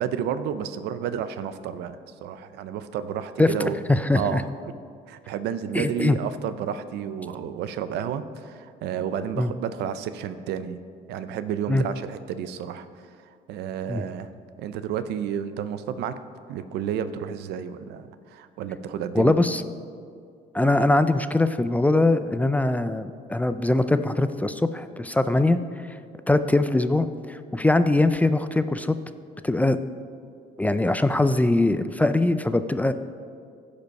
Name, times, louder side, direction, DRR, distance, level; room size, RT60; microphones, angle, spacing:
voice 1, 0.0-3.8 4.1-4.5 5.1-10.8 11.1-14.3 14.6-16.2 16.5-19.4, right 8 dB, 80° right, 12 dB, 0.6 m, -31 dB
voice 2, 3.9-4.4 5.7-6.2 9.4-9.5 11.7-11.8 13.9-14.0 19.1-19.6 20.5-25.6 26.3-29.0 29.4-29.8 30.6-32.9, left 2 dB, 10° left, 11 dB, 0.4 m, -22 dB
15.0 x 5.2 x 5.3 m, 2.2 s
cardioid pair, 110°, 17 cm